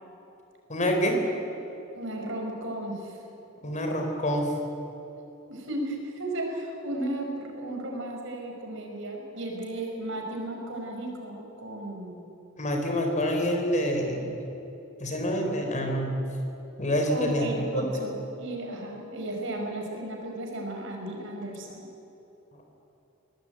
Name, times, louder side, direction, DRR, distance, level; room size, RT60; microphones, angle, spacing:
voice 1, 0.7-1.2 3.6-4.5 12.6-14.3 15.0-16.1 16.8-17.8, equal, 35° left, 3 dB, 4.3 m, -27 dB
voice 2, 1.9-3.2 5.5-12.2 17.1-21.9, right 1 dB, 65° right, 1 dB, 5.4 m, -34 dB
23.5 x 18.5 x 9.1 m, 3.0 s
head